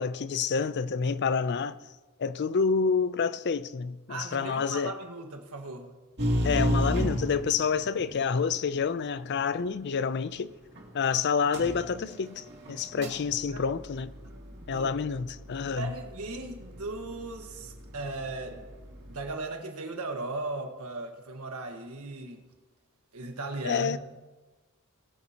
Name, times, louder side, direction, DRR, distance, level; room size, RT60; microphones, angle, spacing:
voice 1, 0.0-1.8 2.2-4.9 6.4-10.5 10.9-14.1 14.7-15.9 23.6-24.0, left 5 dB, 50° left, 0.4 m, -28 dB
voice 2, 4.1-6.0 13.0-13.1 13.5-13.6 14.2-14.9 15.6-18.6 19.0-22.4 23.1-24.0, right 2 dB, 85° right, 1.5 m, -37 dB
sound 1, 6.2-8.2 10.7-10.8 11.5-19.3, equal, 50° right, 2.6 m, -34 dB
20.0 x 9.3 x 2.9 m
head